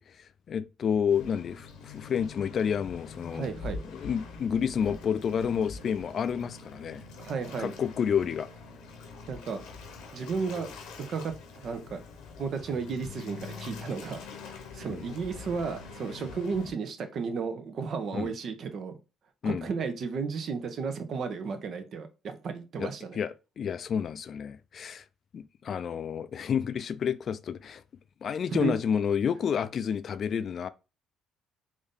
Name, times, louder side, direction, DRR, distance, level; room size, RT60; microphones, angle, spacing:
voice 1, 0.0-3.5 3.9-7.0 7.6-8.5 14.9-15.1 18.1-18.3 19.4-19.7 22.8-25.0 25.3-27.8 28.2-30.7, left 7 dB, 55° left, 0.4 m, -30 dB
Waves surf, 1.1-16.7, left 4 dB, 80° left, 0.9 m, -44 dB
voice 2, 3.3-3.8 7.2-7.7 9.3-9.6 10.1-10.7 11.1-12.0 12.4-14.2 14.5-19.0 19.4-23.2 28.5-28.7, right 5 dB, 60° right, 0.7 m, -33 dB
3.6 x 2.7 x 3.6 m
hypercardioid pair, 55°, 0 cm